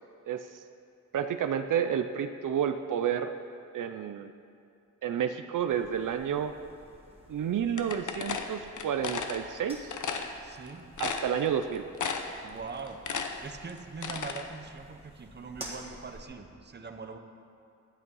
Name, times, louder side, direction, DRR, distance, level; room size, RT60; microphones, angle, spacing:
voice 1, 0.3-0.6 1.1-3.3 3.7-4.3 5.0-6.5 7.3-10.0 11.0-11.9, right 8 dB, 80° right, 8 dB, 0.5 m, -30 dB
sound 1, 5.7-16.2, right 1 dB, 20° right, 1.8 m, -51 dB
sound 2, 7.8-9.4 9.9-10.3 10.7-10.8 11.0-11.6 12.0-12.4 12.7-14.4, left 6 dB, 70° left, 0.8 m, -33 dB
voice 2, 10.4-10.8 12.4-13.0 13.3-17.2, right 4 dB, 35° right, 6 dB, 0.8 m, -42 dB
11.5 x 8.3 x 5.5 m, 2.6 s
wide cardioid pair, 105°, 31 cm